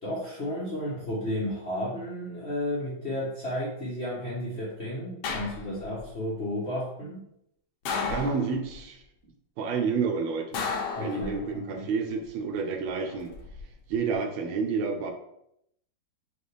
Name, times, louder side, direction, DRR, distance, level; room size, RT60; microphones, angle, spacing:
voice 1, 0.0-7.2 11.0-11.9, left 1 dB, 55° left, -7 dB, 0.7 m, -33 dB
sound 1, 5.2-6.0 7.9-8.8 10.5-11.7 13.1-13.6, left 5 dB, 80° left, 1.4 m, -33 dB
voice 2, 8.1-9.0 9.6-10.6 11.0-13.3 13.9-15.1, right 5 dB, 80° right, 3 dB, 1.5 m, -29 dB
5.1 x 2.4 x 3.2 m, 0.76 s
omnidirectional pair, 2.2 m